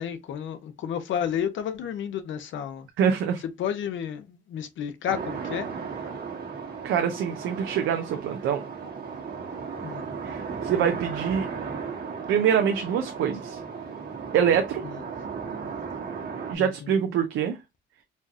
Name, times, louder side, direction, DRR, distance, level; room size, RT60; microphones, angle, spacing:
voice 1, 0.0-2.9 3.6-5.7 9.8-10.1 16.5-16.9, left 9 dB, 75° left, 0.8 m, -31 dB
voice 2, 3.0-3.4 6.8-8.6 10.2-11.5 12.3-13.6 14.3-14.8 16.5-17.6, right 8 dB, 80° right, 0.6 m, -25 dB
sound 1, 5.1-16.5, right 5 dB, 55° right, 1.4 m, -35 dB
4.3 x 2.4 x 2.8 m
cardioid pair, 90°, 20 cm